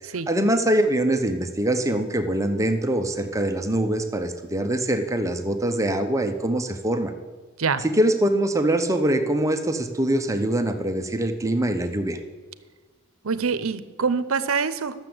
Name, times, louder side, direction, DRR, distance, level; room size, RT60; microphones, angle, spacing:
voice 1, 0.0-7.1 7.8-12.2, right 1 dB, 15° right, 6 dB, 0.7 m, -23 dB
voice 2, 13.2-15.0, right 5 dB, 75° right, 13 dB, 0.7 m, -25 dB
12.0 x 7.0 x 7.7 m, 1.4 s
head